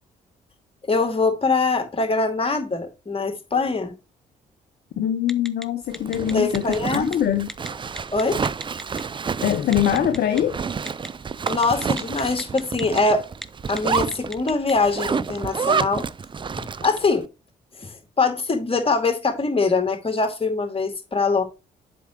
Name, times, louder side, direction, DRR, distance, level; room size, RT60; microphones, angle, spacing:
voice 1, 0.9-3.9 6.3-7.3 8.1-8.4 11.5-13.3 13.7-16.1 16.8-17.3 17.8-21.4, left 3 dB, 25° left, 2.4 m, -23 dB
voice 2, 5.0-7.5 9.4-10.6, left 10 dB, 50° left, 0.8 m, -23 dB
Telephone, 5.3-5.6 5.9-7.2 7.5-7.7 8.0-9.0 9.7-10.4 10.9-11.1 11.5-13.0 13.3-13.4 13.8-14.7, equal, ahead, 0.8 m, -34 dB
Zipper (clothing), 5.9-17.1, right 5 dB, 25° right, 0.5 m, -29 dB
8.0 x 6.1 x 3.0 m
figure-of-eight pair, 40°, 21 cm